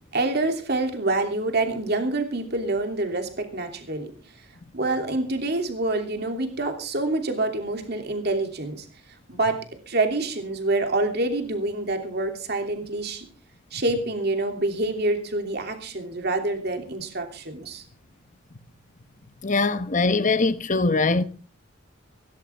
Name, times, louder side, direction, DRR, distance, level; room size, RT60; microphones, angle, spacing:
voice 1, 0.1-4.1 4.7-8.8 9.3-9.6 9.9-13.2 13.7-17.8, right 2 dB, 55° right, 2.9 m, -26 dB
voice 2, 19.4-21.2, left 3 dB, 40° left, 1.0 m, -22 dB
17.0 x 15.5 x 3.6 m
head